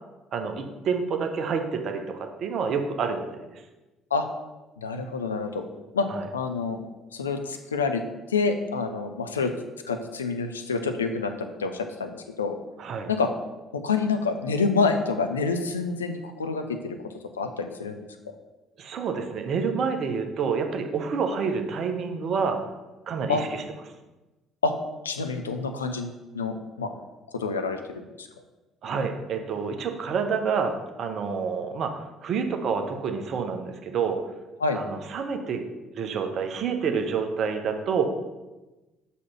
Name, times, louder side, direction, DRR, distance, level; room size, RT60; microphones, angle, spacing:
voice 1, 0.3-3.3 3.5-3.6 6.1-6.2 12.8-13.1 18.8-22.6 23.1-23.6 28.8-34.2 34.7-35.7 35.9-38.1, right 5 dB, 50° right, 5 dB, 0.9 m, -28 dB
voice 2, 4.8-5.7 5.9-6.1 6.3-6.8 7.1-8.0 8.3-9.5 9.9-12.6 13.1-13.3 13.7-18.0 23.3-23.4 24.6-24.7 25.0-26.9 27.3-27.8 28.2-28.3 34.6-34.8, left 4 dB, 85° left, 6 dB, 0.5 m, -27 dB
6.3 x 4.2 x 5.7 m, 1.1 s
figure-of-eight pair, 50°, 0 cm